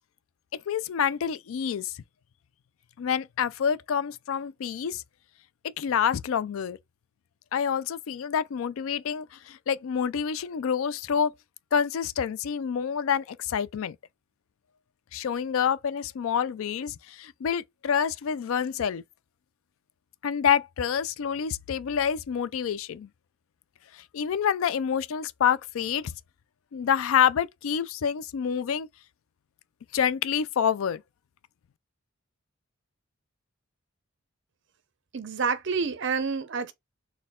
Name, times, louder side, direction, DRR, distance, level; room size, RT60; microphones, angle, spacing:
voice 1, 0.5-2.0 3.0-5.0 5.6-6.8 7.5-11.3 11.7-14.0 15.1-19.0 20.2-23.1 23.9-26.1 26.7-28.9 29.9-31.0, left 7 dB, 75° left, 0.3 m, -27 dB
voice 2, 35.1-36.7, right 5 dB, 55° right, 0.6 m, -28 dB
4.2 x 2.2 x 3.6 m
head